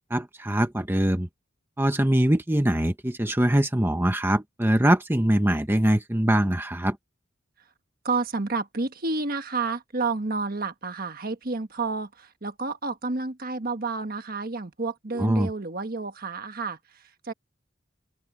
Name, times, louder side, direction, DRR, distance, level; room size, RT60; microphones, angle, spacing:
voice 1, 0.1-1.3 1.8-7.0 15.2-15.5, right 1 dB, 10° right, 1.1 m, -23 dB
voice 2, 8.0-17.3, right 3 dB, 50° right, 1.4 m, -30 dB
open air
head